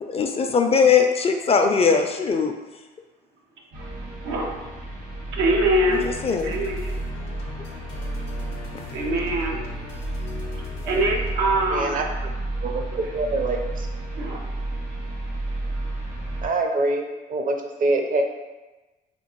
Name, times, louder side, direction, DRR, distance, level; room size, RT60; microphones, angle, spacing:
voice 1, 0.0-2.5 6.0-6.6 8.7-8.9, left 5 dB, 30° left, 4 dB, 0.4 m, -20 dB
sound 1, 3.7-16.5, right 2 dB, 65° right, 1.3 m, -32 dB
voice 2, 4.2-4.6 5.3-6.1 6.4-7.0 8.9-9.6 10.5-12.0 12.9-13.1 14.2-14.4, right 1 dB, 85° right, -1 dB, 0.6 m, -24 dB
sound 2, 5.9-11.3, left 7 dB, 75° left, 0.6 m, -39 dB
voice 3, 11.7-12.0 12.6-13.9 16.4-18.2, right 2 dB, 45° right, 4 dB, 0.6 m, -25 dB
3.6 x 2.5 x 2.9 m, 1.1 s
supercardioid pair, 75°, 20 cm